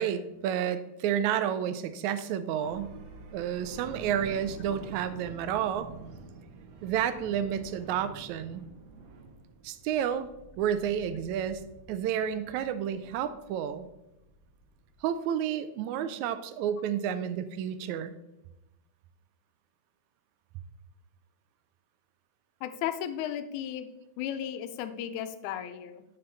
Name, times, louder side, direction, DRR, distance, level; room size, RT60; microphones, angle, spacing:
voice 1, 0.0-2.9 3.3-5.9 6.8-8.7 9.6-10.3 10.6-11.6 11.9-13.9 15.0-18.1, right 9 dB, 85° right, 12 dB, 1.9 m, -30 dB
sound 1, 2.6-15.1, right 3 dB, 65° right, 1.7 m, -48 dB
voice 2, 22.6-23.9 24.2-26.0, left 10 dB, 85° left, 10 dB, 2.1 m, -35 dB
9.4 x 5.6 x 4.0 m, 0.92 s
omnidirectional pair, 3.3 m